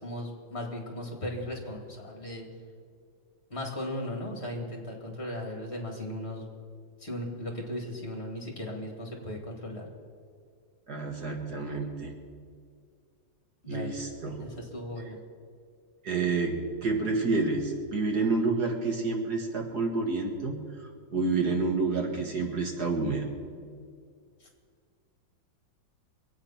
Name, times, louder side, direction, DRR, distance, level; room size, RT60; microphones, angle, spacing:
voice 1, 0.0-2.5 3.5-6.5 7.0-9.9 13.6-14.0 14.4-15.2 24.4-24.5, left 1 dB, 35° left, 1 dB, 2.4 m, -37 dB
voice 2, 10.9-12.1 13.7-14.4 16.0-23.3, right 3 dB, 60° right, 1 dB, 2.2 m, -29 dB
23.5 x 8.9 x 5.8 m, 2.1 s
omnidirectional pair, 2.0 m